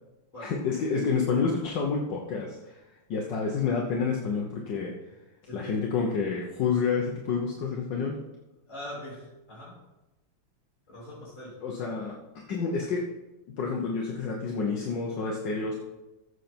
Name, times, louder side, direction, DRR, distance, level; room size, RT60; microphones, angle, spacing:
voice 1, 0.4-2.8 3.1-4.9 5.5-8.2 11.6-13.0 13.5-15.8, left 5 dB, 65° left, 0 dB, 1.7 m, -29 dB
voice 2, 5.4-5.8 8.7-9.8 10.9-11.6, left 1 dB, 40° left, -8 dB, 3.9 m, -42 dB
14.5 x 6.5 x 4.4 m, 1.0 s
omnidirectional pair, 2.1 m